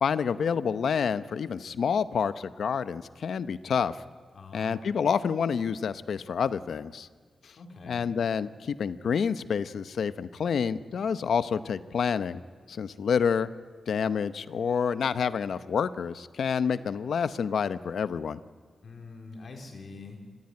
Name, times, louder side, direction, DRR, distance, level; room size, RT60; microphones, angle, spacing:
voice 1, 0.0-4.0 4.5-7.1 7.4-7.5 7.8-12.4 12.7-13.5 13.9-18.4, left 6 dB, 75° left, 14 dB, 0.8 m, -28 dB
voice 2, 4.3-4.9 7.6-8.1 18.8-20.2, left 3 dB, 55° left, 2 dB, 3.9 m, -44 dB
25.5 x 15.0 x 9.8 m, 1.5 s
wide cardioid pair, 155°, 0 cm